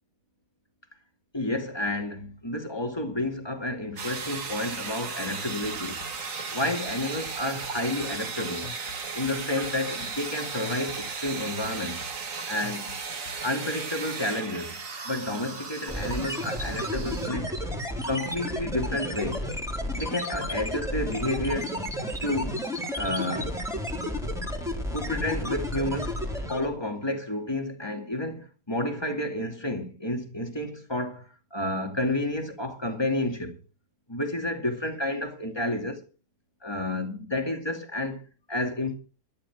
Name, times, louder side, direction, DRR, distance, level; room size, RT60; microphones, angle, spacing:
voice 1, 1.3-6.0 6.5-8.7 9.1-12.0 12.5-13.0 13.4-14.8 15.0-17.6 18.0-19.5 19.9-21.7 22.2-22.6 22.9-23.6 24.9-26.2 26.5-33.6 34.1-36.0 36.6-38.9, left 1 dB, 15° left, 2.4 m, -30 dB
sound 1, 4.0-17.3, right 5 dB, 50° right, 2.1 m, -36 dB
sound 2, 5.6-13.4, left 6 dB, 70° left, 1.8 m, -45 dB
sound 3, 15.9-26.8, equal, ahead, 3.6 m, -32 dB
13.0 x 10.5 x 6.1 m
omnidirectional pair, 1.8 m